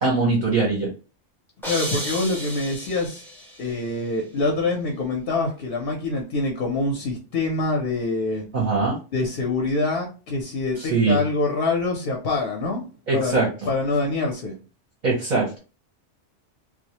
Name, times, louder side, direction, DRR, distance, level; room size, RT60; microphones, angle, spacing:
voice 1, 0.0-0.9 8.5-9.0 10.8-11.2 13.1-13.7 15.0-15.6, right 4 dB, 45° right, -2 dB, 0.7 m, -22 dB
voice 2, 1.6-3.2 3.6-8.4 9.1-12.8 13.1-13.4 13.7-14.6, left 3 dB, 60° left, 1 dB, 0.7 m, -25 dB
sound 1, 1.6-3.7, equal, 5° left, 0.4 m, -33 dB
2.3 x 2.0 x 2.8 m, 0.34 s
omnidirectional pair, 1.2 m